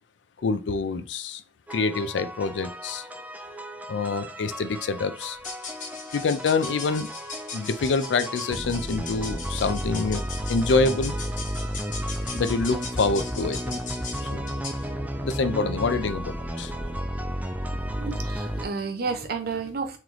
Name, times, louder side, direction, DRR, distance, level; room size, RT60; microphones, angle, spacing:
voice 1, 0.4-1.4 1.7-3.1 3.9-5.4 6.1-7.1 7.5-10.2 10.5-11.2 12.3-13.8 14.2-14.5 15.2-16.7, left 4 dB, 75° left, 0.4 m, -26 dB
sound 1, 1.7-18.7, equal, 10° right, 0.4 m, -33 dB
sound 2, 5.4-14.9, left 4 dB, 45° left, 1.1 m, -39 dB
voice 2, 17.9-20.0, right 4 dB, 55° right, 0.7 m, -31 dB
3.1 x 3.0 x 3.8 m
head